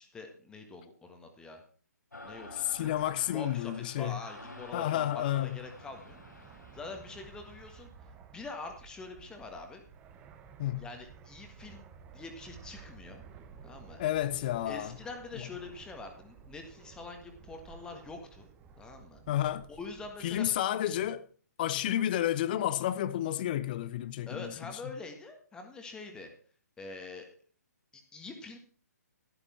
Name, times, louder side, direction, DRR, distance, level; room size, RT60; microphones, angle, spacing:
voice 1, 0.0-1.6 2.2-2.9 3.3-6.2 6.7-7.9 8.3-9.8 10.8-11.9 12.1-13.2 13.6-14.0 14.7-18.5 18.8-19.2 19.7-20.5 24.3-26.3 26.8-27.3 27.9-28.6, left 3 dB, 10° left, 1.6 m, -45 dB
sound 1, 2.1-7.9, left 2 dB, 85° left, 2.8 m, -50 dB
voice 2, 2.7-4.2 4.7-5.5 10.6-10.9 14.0-14.9 19.3-19.7 20.2-21.2 21.6-24.5, left 12 dB, 30° left, 0.6 m, -31 dB
Fixed-wing aircraft airplane, 5.4-20.5, right 6 dB, 15° right, 1.0 m, -54 dB
12.5 x 12.0 x 4.4 m
figure-of-eight pair, 135°, 9 cm